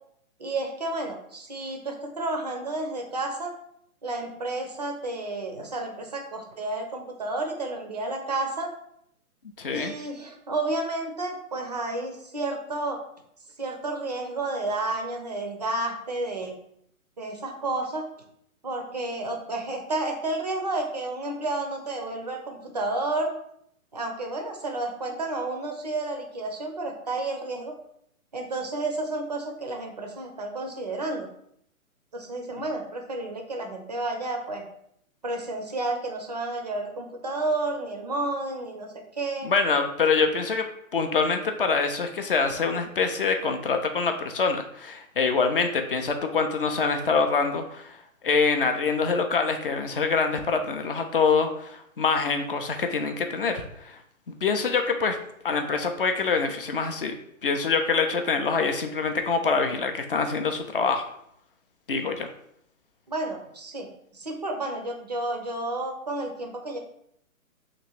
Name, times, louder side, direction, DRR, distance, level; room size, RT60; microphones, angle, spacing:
voice 1, 0.4-3.5 4.0-8.7 9.7-13.0 13.6-16.6 17.2-18.1 18.6-23.3 23.9-27.7 28.3-31.3 32.1-34.6 35.2-39.5 63.1-63.9 64.1-66.8, right 2 dB, 30° right, 3 dB, 0.4 m, -31 dB
voice 2, 9.6-9.9 39.4-40.7 40.9-48.0 48.2-54.0 54.3-55.2 55.4-57.2 57.4-61.1 61.9-62.3, left 4 dB, 40° left, 6 dB, 0.4 m, -25 dB
3.0 x 2.9 x 4.3 m, 0.72 s
figure-of-eight pair, 135°, 43 cm